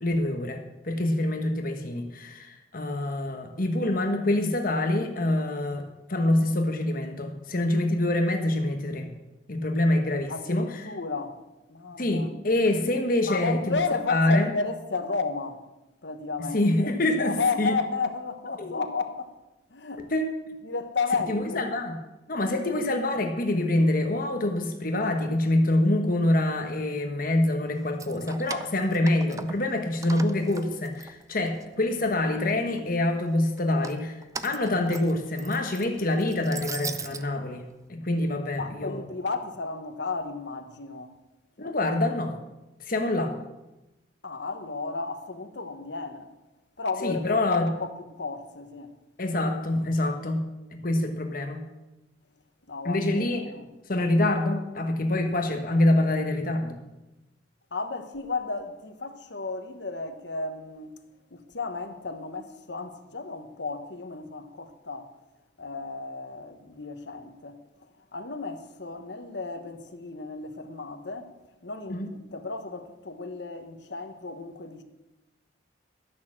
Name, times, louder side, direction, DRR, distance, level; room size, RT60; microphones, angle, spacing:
voice 1, 0.0-9.1 9.5-10.8 12.0-13.8 14.1-14.5 16.5-17.3 17.6-17.7 18.6-18.8 20.1-20.3 21.3-21.9 22.3-37.6 37.9-39.0 41.6-42.3 42.9-43.3 47.0-47.7 49.2-50.4 50.7-51.6 52.8-53.4 53.9-56.8 71.9-72.1, left 1 dB, 50° left, 1.2 m, -26 dB
voice 2, 10.3-11.4 11.7-12.4 13.3-15.6 16.0-16.9 17.2-19.3 19.7-20.1 20.6-21.6 38.6-41.1 41.6-41.7 44.2-46.3 46.8-48.9 51.2-51.3 52.7-53.7 57.7-61.0 61.3-65.1 65.6-67.6 68.1-71.3 71.6-74.8, left 4 dB, 70° left, 1.2 m, -33 dB
Keys jangling, 27.8-29.7 30.0-31.6 32.1-32.8 33.6-37.2, right 5 dB, 15° right, 0.5 m, -40 dB
12.5 x 6.4 x 7.4 m
head